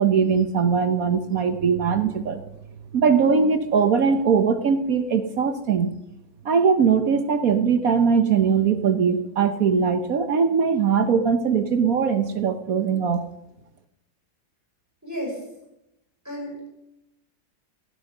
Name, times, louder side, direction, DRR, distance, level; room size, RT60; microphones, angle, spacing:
voice 1, 0.0-2.4 2.9-5.9 6.4-13.2, right 6 dB, 55° right, 10 dB, 1.2 m, -21 dB
voice 2, 15.0-15.4 16.2-16.7, equal, 10° right, -3 dB, 6.1 m, -32 dB
16.0 x 12.0 x 6.7 m, 0.86 s
omnidirectional pair, 2.0 m